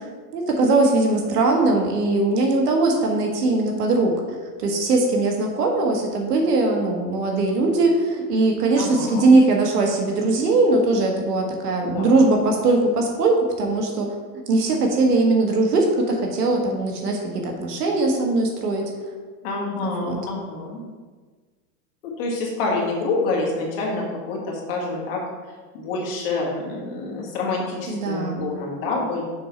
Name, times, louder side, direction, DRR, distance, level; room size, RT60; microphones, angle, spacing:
voice 1, 0.0-4.1 4.6-14.1 14.5-18.8 19.8-20.2 27.9-28.5, right 2 dB, 75° right, 2 dB, 1.6 m, -20 dB
voice 2, 8.7-9.3 11.9-12.4 19.4-20.8 22.2-25.2 25.7-29.2, left 3 dB, 35° left, -2 dB, 1.5 m, -27 dB
6.6 x 5.4 x 4.4 m, 1.4 s
supercardioid pair, 175°, 47 cm